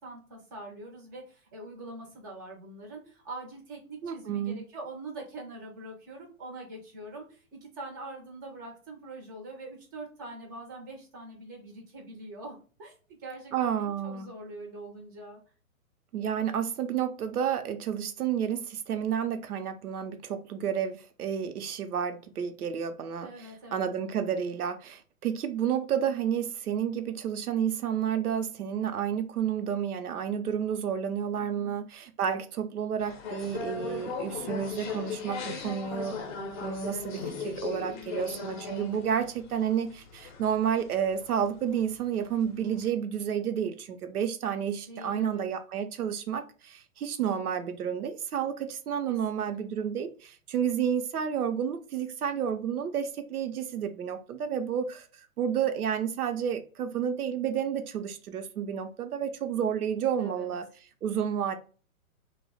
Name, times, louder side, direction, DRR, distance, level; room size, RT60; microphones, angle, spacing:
voice 1, 0.0-12.9 13.2-15.4 23.2-23.9 31.3-31.7 37.8-38.8 44.9-45.5 49.1-49.7 60.2-60.5, right 2 dB, 15° right, 0.4 m, -44 dB
voice 2, 4.0-4.6 13.5-14.3 16.1-36.2 36.6-55.1 55.4-60.7 61.0-61.5, right 8 dB, 90° right, 0.6 m, -30 dB
sound 1, 33.0-42.9, left 5 dB, 35° left, 0.5 m, -38 dB
2.7 x 2.0 x 3.9 m
hypercardioid pair, 130°, 43 cm